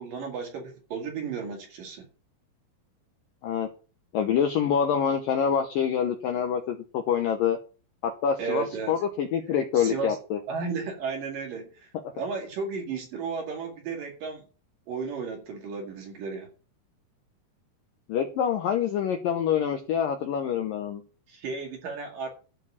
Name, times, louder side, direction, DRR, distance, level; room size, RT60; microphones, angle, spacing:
voice 1, 0.0-2.0 8.4-9.0 9.7-10.2 10.5-14.4 14.9-16.5 21.3-22.3, right 5 dB, 55° right, 2 dB, 3.4 m, -34 dB
voice 2, 4.1-7.6 8.0-10.4 18.1-21.0, left 8 dB, 75° left, 5 dB, 2.1 m, -26 dB
12.0 x 4.6 x 8.5 m, 0.36 s
omnidirectional pair, 5.2 m